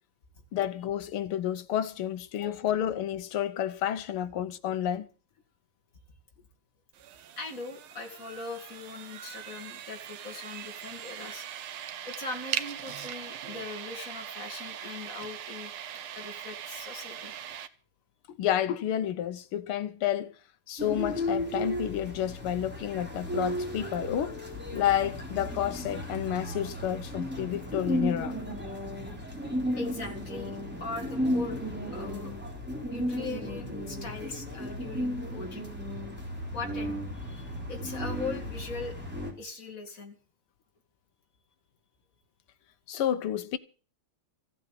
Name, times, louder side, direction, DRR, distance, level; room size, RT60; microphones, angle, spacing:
voice 1, 0.5-5.1 18.3-20.3 20.7-24.4 24.7-28.3 42.9-43.6, left 10 dB, 80° left, 1.8 m, -30 dB
sound 1, 6.9-17.7, right 10 dB, 80° right, 1.8 m, -40 dB
voice 2, 7.4-11.5 12.0-15.7 16.1-17.3 29.7-31.6 31.9-32.4 32.9-35.6 36.5-39.0 39.4-40.2, left 3 dB, 40° left, 2.9 m, -40 dB
sound 2, 20.8-39.3, equal, 5° right, 3.6 m, -34 dB
15.0 x 8.2 x 8.4 m
omnidirectional pair, 2.4 m